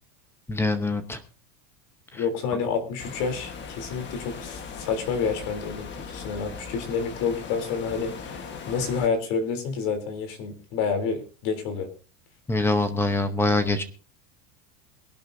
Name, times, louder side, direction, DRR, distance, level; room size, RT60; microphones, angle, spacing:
voice 1, 0.5-1.2 2.1-2.2 12.5-13.8, left 2 dB, 5° left, 9 dB, 0.8 m, -24 dB
voice 2, 2.1-11.9, left 5 dB, 50° left, 7 dB, 3.5 m, -29 dB
sound 1, 3.0-9.1, left 5 dB, 25° left, 1.4 m, -39 dB
22.5 x 11.5 x 2.7 m, 0.36 s
supercardioid pair, 170°, 46 cm